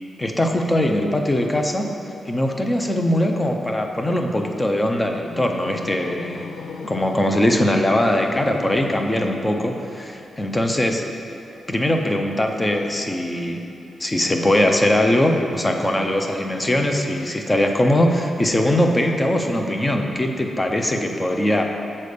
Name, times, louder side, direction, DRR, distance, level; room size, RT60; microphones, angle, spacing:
voice 1, 0.2-1.9 2.3-6.5 6.8-11.0 11.7-13.6 14.0-21.6, left 1 dB, 15° left, 3 dB, 0.5 m, -21 dB
sound 1, 5.0-9.7, left 5 dB, 65° left, 0.3 m, -38 dB
6.9 x 4.2 x 6.6 m, 3.0 s
wide cardioid pair, 160°, 0 cm